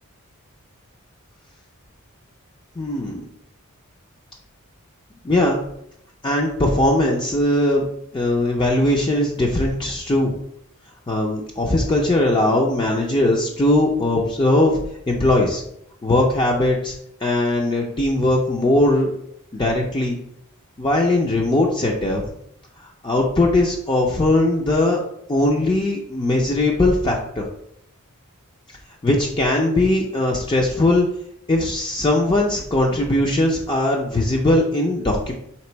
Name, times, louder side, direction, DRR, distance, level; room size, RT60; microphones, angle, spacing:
voice 1, 2.8-3.2 5.2-5.6 6.2-7.8 8.1-10.3 11.1-14.8 15.1-15.6 16.0-16.9 17.2-19.1 19.5-20.2 20.8-22.2 23.0-25.0 25.3-27.5 29.0-31.1 31.5-35.3, left 1 dB, 20° left, -1 dB, 0.4 m, -19 dB
3.4 x 2.9 x 4.4 m, 0.74 s
head